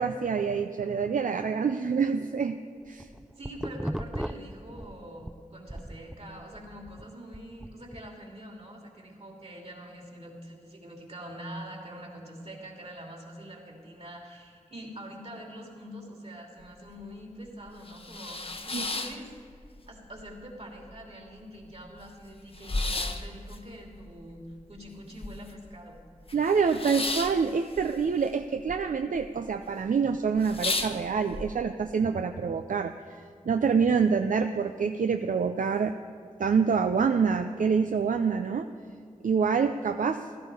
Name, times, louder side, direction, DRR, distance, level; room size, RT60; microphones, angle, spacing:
voice 1, 0.0-2.6 2.9-3.1 18.7-18.8 26.3-35.9 36.4-38.7 39.2-40.2, right 5 dB, 75° right, 7 dB, 0.5 m, -26 dB
sound 1, 2.8-5.4 5.7-8.1, right 1 dB, 5° right, 0.4 m, -37 dB
voice 2, 3.4-19.3 19.9-26.0, equal, 50° right, 0 dB, 2.8 m, -44 dB
sound 2, 16.6-16.7 17.1-17.2 17.7-19.9 20.2-20.9 21.3-21.4 21.5-25.7 26.0-28.8 29.0-29.6 30.0-30.1 30.4-31.4, left 2 dB, 45° left, 1.0 m, -34 dB
15.0 x 13.0 x 4.9 m, 2.2 s
wide cardioid pair, 55°, 14 cm